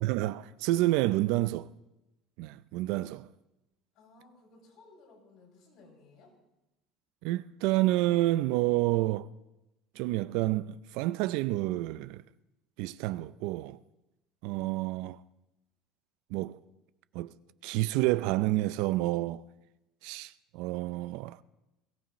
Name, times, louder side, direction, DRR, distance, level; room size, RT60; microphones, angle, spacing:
voice 1, 0.0-1.7 2.4-3.3 7.2-9.3 10.0-12.2 12.8-13.8 14.4-15.2 16.3-16.6 17.1-17.3 17.6-19.4 20.0-21.4, right 17 dB, 75° right, 0.4 m, -29 dB
voice 2, 3.9-6.3, left 3 dB, 70° left, 6.2 m, -58 dB
21.5 x 14.5 x 3.1 m
cardioid pair, 130°, 0 cm